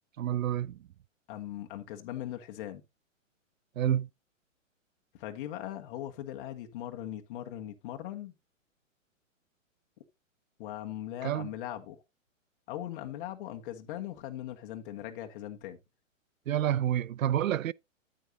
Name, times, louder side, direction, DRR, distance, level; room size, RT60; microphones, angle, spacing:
voice 1, 0.2-0.8 3.8-4.1 11.2-11.5 16.5-17.7, right 11 dB, 85° right, 0.5 m, -28 dB
voice 2, 1.3-2.8 5.1-8.3 10.6-12.0 12.7-15.8, left 12 dB, 40° left, 1.4 m, -39 dB
9.3 x 9.1 x 2.8 m
hypercardioid pair, 130°, 39 cm